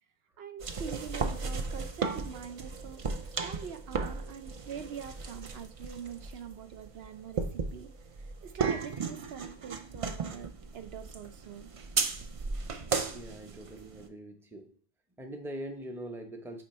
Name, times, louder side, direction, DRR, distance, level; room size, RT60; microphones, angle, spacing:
voice 1, 0.4-3.0 3.4-11.7, right 8 dB, 70° right, 0.8 m, -44 dB
sound 1, 0.6-14.1, right 4 dB, 40° right, 0.5 m, -35 dB
voice 2, 13.1-14.8 15.2-16.6, right 1 dB, 5° right, 0.7 m, -42 dB
8.8 x 3.1 x 4.3 m
omnidirectional pair, 1.1 m